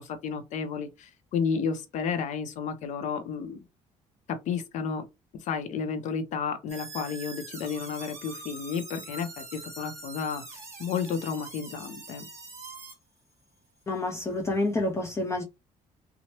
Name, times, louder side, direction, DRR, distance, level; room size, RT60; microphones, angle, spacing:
voice 1, 0.0-3.6 4.5-5.1 5.3-12.3, left 6 dB, 65° left, 0.6 m, -32 dB
sound 1, 6.7-12.9, right 2 dB, 20° right, 1.4 m, -43 dB
voice 2, 13.9-15.4, left 2 dB, 20° left, 0.5 m, -28 dB
2.9 x 2.0 x 2.9 m
cardioid pair, 110°, 13 cm